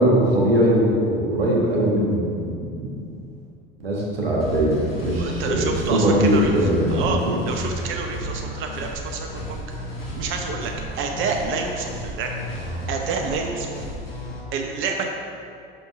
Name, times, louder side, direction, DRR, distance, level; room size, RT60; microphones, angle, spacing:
voice 1, 0.0-2.5 2.8-3.0 3.8-7.4, right 1 dB, 90° right, -4 dB, 1.4 m, -20 dB
sound 1, 4.4-14.4, equal, 90° left, 1.3 m, -33 dB
voice 2, 5.2-7.2 7.5-9.6 10.2-12.3 12.9-13.8 14.5-15.1, right 4 dB, 45° right, 2 dB, 0.8 m, -28 dB
5.9 x 5.4 x 4.7 m, 2.4 s
hypercardioid pair, 75°, 29 cm